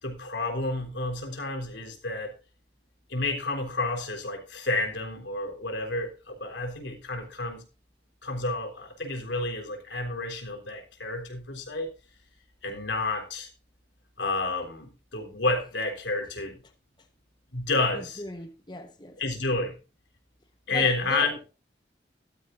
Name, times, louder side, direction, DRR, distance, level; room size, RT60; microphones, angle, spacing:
voice 1, 0.0-2.3 3.1-7.6 8.2-11.9 12.6-13.5 14.2-16.6 17.5-18.2 19.2-19.8 20.7-21.4, left 2 dB, 80° left, 3.7 m, -30 dB
voice 2, 17.9-19.4 20.7-21.5, left 1 dB, 25° left, 1.1 m, -39 dB
14.0 x 12.5 x 2.6 m
head